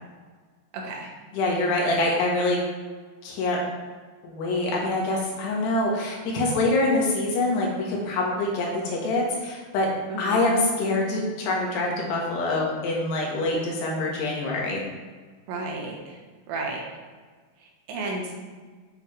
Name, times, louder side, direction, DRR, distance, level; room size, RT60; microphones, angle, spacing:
voice 1, 0.7-1.1 10.1-10.4 15.5-16.2 16.5-16.8 17.9-18.3, right 3 dB, 90° right, -1 dB, 3.6 m, -32 dB
voice 2, 1.3-2.6 3.2-3.6 4.2-9.9 10.2-14.8, left 2 dB, 75° left, -3 dB, 3.6 m, -25 dB
8.2 x 7.4 x 3.3 m, 1.5 s
omnidirectional pair, 5.0 m